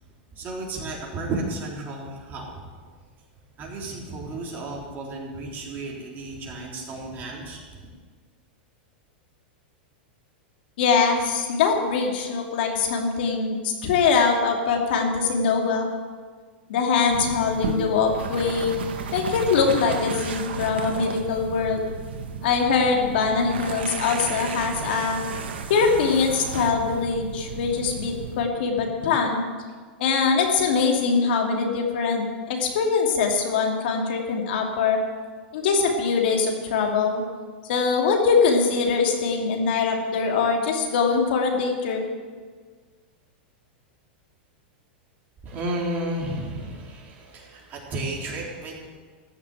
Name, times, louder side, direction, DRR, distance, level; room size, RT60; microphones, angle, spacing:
voice 1, 0.3-2.8 3.6-7.9 45.4-48.9, right 2 dB, 35° right, -2 dB, 3.7 m, -33 dB
voice 2, 10.8-15.9 16.7-18.8 19.1-21.8 22.4-25.2 25.7-29.4 30.0-35.0 35.5-37.2 37.7-42.0, left 5 dB, 70° left, 2 dB, 2.5 m, -23 dB
sound 1, 17.1-28.4, right 5 dB, 85° right, 1.4 m, -33 dB
14.5 x 6.7 x 9.2 m, 1.5 s
hypercardioid pair, 125°, 6 cm